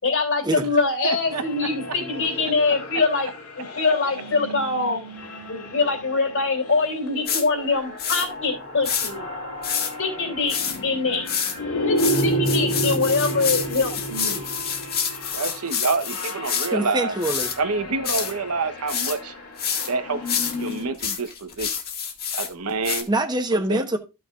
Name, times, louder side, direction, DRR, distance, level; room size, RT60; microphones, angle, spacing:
voice 1, 0.0-3.3 3.6-5.0 5.5-9.3 10.0-10.5 10.8-11.2 11.8-14.5, left 3 dB, 60° left, 3.1 m, -24 dB
voice 2, 1.0-1.4 15.3-17.2 17.6-19.3 19.9-20.2 20.5-21.8 22.3-23.1 23.7-23.8, right 4 dB, 90° right, 1.1 m, -27 dB
sound 1, 1.1-21.0, equal, 85° left, 2.8 m, -32 dB
sound 2, 7.3-7.4 8.0-8.3 8.8-9.1 9.6-9.9 10.5-10.8 11.3-11.5 12.0-16.7 17.2-17.6 18.0-18.3 18.9-19.2 19.6-19.9 20.3-22.5 22.8-23.0, left 7 dB, 45° left, 1.8 m, -27 dB
voice 3, 16.7-17.5 23.1-24.0, right 1 dB, 20° right, 1.1 m, -24 dB
14.5 x 6.1 x 2.4 m
head